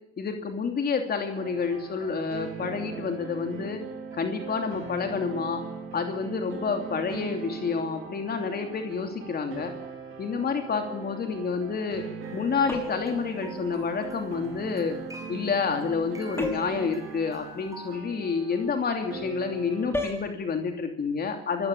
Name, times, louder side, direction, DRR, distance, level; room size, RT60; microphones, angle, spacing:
voice 1, 0.2-3.8 4.1-5.6 5.9-9.7 10.2-12.0 12.3-15.0 15.3-21.7, left 5 dB, 50° left, 5 dB, 2.9 m, -29 dB
sound 1, 1.3-20.1, right 5 dB, 85° right, 3.9 m, -40 dB
sound 2, 12.2-18.0, right 2 dB, 15° right, 4.9 m, -48 dB
sound 3, 12.7-13.2 16.4-16.8 19.9-20.3, left 2 dB, 10° left, 5.4 m, -32 dB
25.0 x 14.5 x 8.6 m, 0.81 s
cardioid pair, 90°, 20 cm